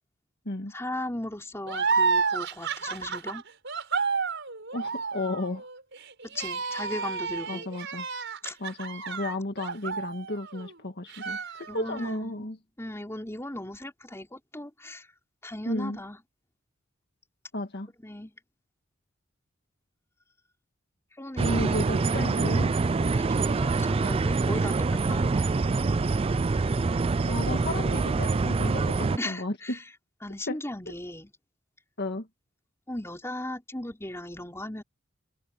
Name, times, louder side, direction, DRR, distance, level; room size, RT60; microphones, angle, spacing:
voice 1, 0.7-3.4 6.2-7.7 8.4-8.6 9.0-9.2 11.7-15.1 15.4-16.2 18.0-18.3 21.2-21.8 23.0-24.7 25.1-25.4 29.2-29.8 30.2-31.3 32.9-34.8, left 1 dB, 15° left, 4.6 m, -37 dB
sound 1, 1.7-10.7 11.1-12.1, right 5 dB, 60° right, 6.2 m, -31 dB
voice 2, 4.7-5.7 7.5-8.1 8.6-12.6 15.7-16.0 17.5-17.9 21.4-22.7 27.3-29.8 30.5-30.6 30.9-31.0 32.0-32.3, left 1 dB, 50° left, 1.9 m, -33 dB
sound 2, 21.4-29.2, right 3 dB, 25° right, 0.4 m, -25 dB
head